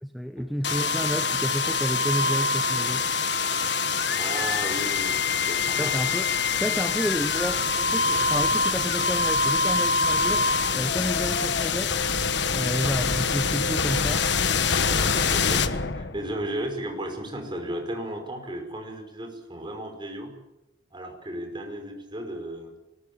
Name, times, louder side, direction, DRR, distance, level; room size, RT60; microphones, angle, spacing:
voice 1, 0.0-3.1 5.8-6.3 6.6-10.5 10.7-12.0 12.5-14.3, equal, ahead, 7 dB, 1.0 m, -30 dB
sound 1, 0.6-16.5, left 4 dB, 60° left, 1.3 m, -25 dB
voice 2, 4.1-5.9 14.9-20.3 20.9-22.7, right 1 dB, 25° right, 4 dB, 5.5 m, -35 dB
23.0 x 20.5 x 8.7 m, 0.93 s
head